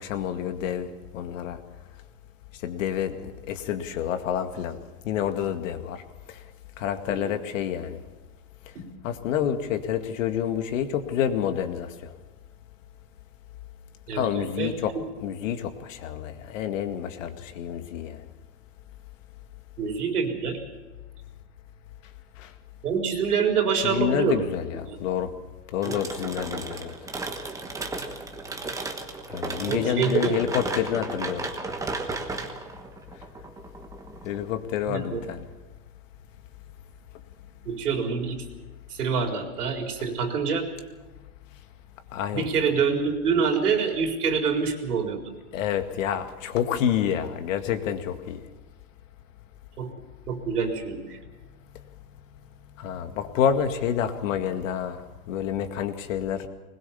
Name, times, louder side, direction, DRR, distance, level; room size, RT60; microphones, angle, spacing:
voice 1, 0.0-1.6 2.6-4.8 5.0-6.0 6.3-6.4 6.8-8.0 9.0-12.1 14.1-18.2 22.4-22.5 23.8-25.3 25.7-26.9 29.3-31.5 34.2-35.5 42.1-42.5 45.5-48.4 52.8-56.5, left 9 dB, 60° left, 8 dB, 2.1 m, -28 dB
voice 2, 14.1-14.7 19.8-20.6 22.8-24.4 24.9-25.0 25.8-25.9 29.7-30.4 34.9-35.2 37.7-38.4 38.9-40.6 42.3-45.2 49.8-49.9 50.3-51.2, right 6 dB, 90° right, 3 dB, 4.3 m, -26 dB
sound 1, 25.8-34.5, right 3 dB, 5° right, 1.3 m, -34 dB
21.0 x 20.5 x 7.1 m, 1.2 s
supercardioid pair, 150°, 44 cm